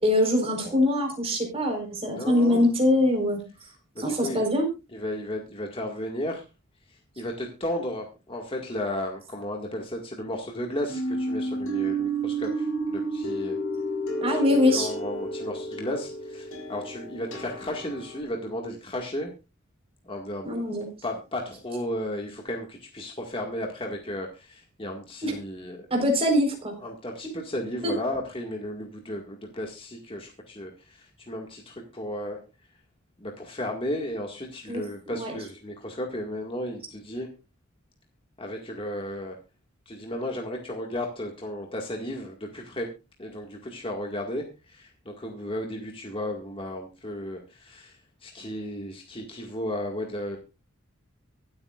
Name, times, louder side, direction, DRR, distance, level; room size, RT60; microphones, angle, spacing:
voice 1, 0.0-3.4 4.0-4.7 14.2-14.9 20.4-20.9 25.2-25.4 25.9-26.7 27.8-27.9 34.7-34.8 35.1-35.3, left 1 dB, 30° right, 2 dB, 4.5 m, -23 dB
voice 2, 2.1-2.7 4.0-4.5 4.9-6.4 7.2-13.6 14.3-19.3 20.0-20.6 21.0-25.9 26.8-32.4 33.2-37.3 38.4-39.4 39.9-42.9 43.2-48.0 48.2-50.4, left 1 dB, 25° left, 1 dB, 1.9 m, -34 dB
sound 1, 10.9-18.2, right 2 dB, 90° left, 5.6 m, -31 dB
23.5 x 8.9 x 2.5 m, 0.28 s
head